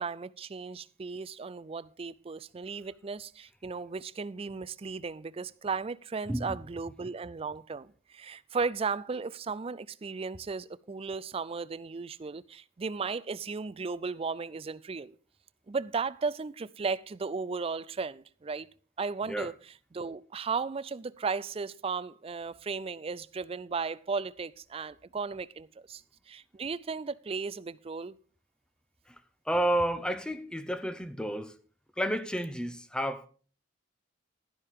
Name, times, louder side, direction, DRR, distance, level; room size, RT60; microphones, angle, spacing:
voice 1, 0.0-15.2 15.7-18.7 19.0-19.5 19.9-28.2, right 4 dB, 30° right, 0.4 m, -35 dB
voice 2, 29.5-31.6 32.0-33.3, right 1 dB, 5° left, 0.8 m, -31 dB
11.5 x 11.0 x 3.6 m
head